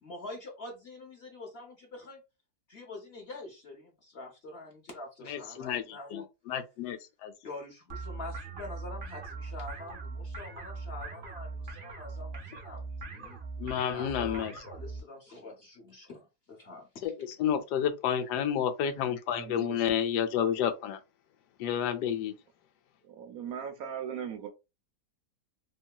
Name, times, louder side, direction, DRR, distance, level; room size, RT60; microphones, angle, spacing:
voice 1, 0.0-2.2 2.7-6.2 7.4-12.8 13.1-13.4 13.9-17.1, left 2 dB, 50° left, 0.8 m, -45 dB
voice 2, 5.3-7.3 13.6-14.5 17.0-21.0 21.6-22.3, left 9 dB, 80° left, 1.2 m, -30 dB
sound 1, 7.9-15.0, right 3 dB, 50° right, 0.6 m, -41 dB
voice 3, 19.4-19.7 23.0-24.5, right 8 dB, 70° right, 1.1 m, -38 dB
3.0 x 2.7 x 2.2 m
omnidirectional pair, 1.8 m